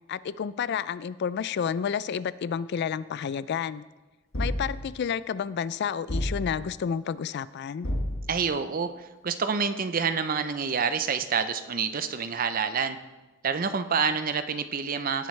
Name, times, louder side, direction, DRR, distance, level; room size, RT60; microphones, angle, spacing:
voice 1, 0.1-3.8 4.4-7.9, left 7 dB, 60° left, 17 dB, 0.3 m, -30 dB
sound 1, 4.3-5.1 6.1-6.8 7.8-8.6, left 1 dB, 85° left, 1.5 m, -31 dB
voice 2, 8.3-8.9 9.2-13.0 13.4-15.3, right 6 dB, 45° right, 10 dB, 0.6 m, -27 dB
17.5 x 7.7 x 3.2 m, 1.1 s
head